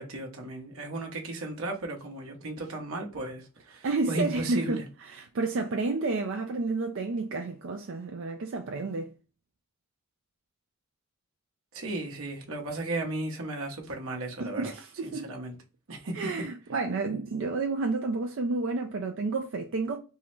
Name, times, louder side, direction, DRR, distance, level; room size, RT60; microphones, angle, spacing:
voice 1, 0.0-4.8 11.7-14.7 15.0-15.5 15.9-16.5, right 2 dB, 80° right, 0.9 m, -35 dB
voice 2, 3.8-9.1 14.4-15.3 16.1-20.0, right 3 dB, 65° right, 0.4 m, -30 dB
3.6 x 2.1 x 4.4 m
head